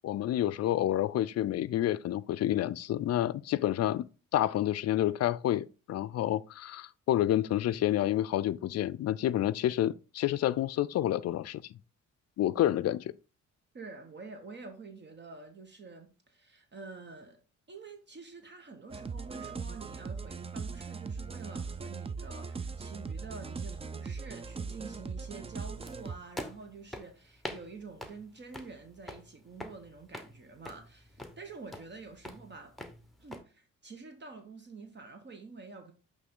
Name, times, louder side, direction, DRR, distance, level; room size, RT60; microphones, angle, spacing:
voice 1, 0.0-4.1 4.3-11.6 12.4-13.1, left 13 dB, 55° left, 0.4 m, -29 dB
voice 2, 13.7-17.4 17.7-32.8 33.2-35.9, right 4 dB, 35° right, 1.0 m, -48 dB
sound 1, 18.9-26.2, right 5 dB, 20° right, 0.4 m, -39 dB
sound 2, 25.8-33.4, left 1 dB, ahead, 1.0 m, -46 dB
8.3 x 3.2 x 3.8 m
cardioid pair, 90°, 30 cm